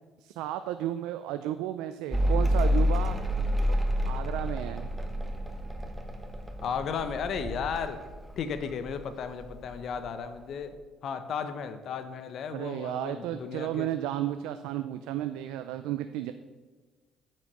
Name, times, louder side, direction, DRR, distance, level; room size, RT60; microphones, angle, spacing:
voice 1, 0.2-3.2 4.1-4.9 12.5-16.3, right 12 dB, 90° right, 10 dB, 0.4 m, -33 dB
Mechanical fan, 2.1-9.0 9.2-10.0, equal, 10° right, 1.3 m, -29 dB
voice 2, 6.6-8.0 8.4-10.8 11.0-13.9, left 6 dB, 55° left, 10 dB, 0.8 m, -34 dB
8.9 x 6.2 x 6.7 m, 1.3 s
cardioid pair, 115°, 0 cm